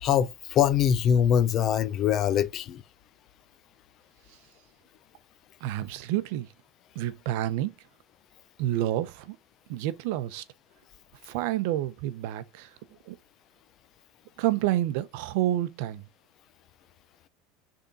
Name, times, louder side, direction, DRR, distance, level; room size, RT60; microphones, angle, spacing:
voice 1, 0.0-2.8, left 9 dB, 35° left, 0.6 m, -23 dB
voice 2, 5.6-6.5 6.9-7.7 8.6-9.4 9.7-10.4 11.2-12.7 13.1-13.2 14.4-16.0, right 14 dB, 65° right, 0.7 m, -29 dB
6.5 x 3.7 x 4.1 m
supercardioid pair, 160°, 0 cm